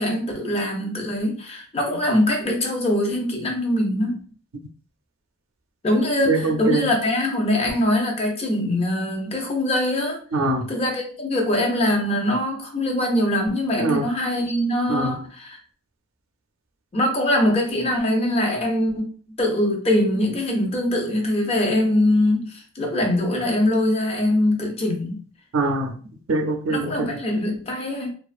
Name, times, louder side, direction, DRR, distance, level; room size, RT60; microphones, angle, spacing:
voice 1, 0.0-4.2 5.8-10.2 10.7-15.6 16.9-19.1 19.4-25.2 26.7-28.1, left 1 dB, 30° left, 0.5 m, -22 dB
voice 2, 6.2-6.9 10.3-10.7 13.8-14.1 14.9-15.2 25.5-26.0 26.3-27.2, right 2 dB, 80° right, 0.5 m, -23 dB
2.4 x 2.3 x 2.4 m
head